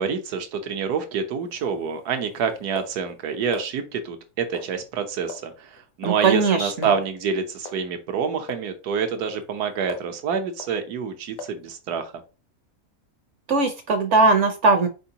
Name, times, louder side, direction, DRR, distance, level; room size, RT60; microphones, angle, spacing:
voice 1, 0.0-12.1, right 6 dB, 85° right, 7 dB, 1.3 m, -27 dB
sound 1, 1.4-3.7 4.5-5.0 5.3-5.5 5.8-6.2 6.5-6.6 6.8-7.0 7.6-7.9 8.5-8.7 9.1-10.2 10.6-10.8 11.4-11.6, left 4 dB, 70° left, 1.1 m, -39 dB
voice 2, 6.0-6.9 13.5-14.9, right 3 dB, 60° right, 7 dB, 0.8 m, -19 dB
4.4 x 3.8 x 2.7 m, 0.32 s
omnidirectional pair, 1.7 m